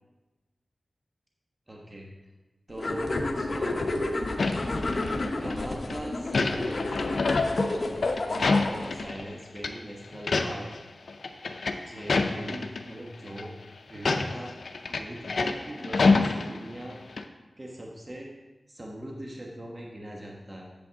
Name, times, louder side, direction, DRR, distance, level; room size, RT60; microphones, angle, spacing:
voice 1, 1.7-2.1 2.7-4.2 4.9-6.8 7.7-7.9 8.2-10.7 11.8-13.6 13.9-14.5 14.9-17.0 17.6-18.3 18.7-20.7, right 1 dB, 35° right, -2 dB, 1.3 m, -41 dB
sound 1, 2.8-9.0, left 2 dB, 60° left, 0.9 m, -31 dB
sound 2, 4.4-5.5 5.9-9.3 9.6-9.7 10.1-10.8 11.1-12.8 13.3-13.4 13.9-16.9 17.2-17.3, left 3 dB, 85° left, 0.5 m, -27 dB
8.5 x 7.5 x 3.7 m, 1.2 s
wide cardioid pair, 55°, 0 cm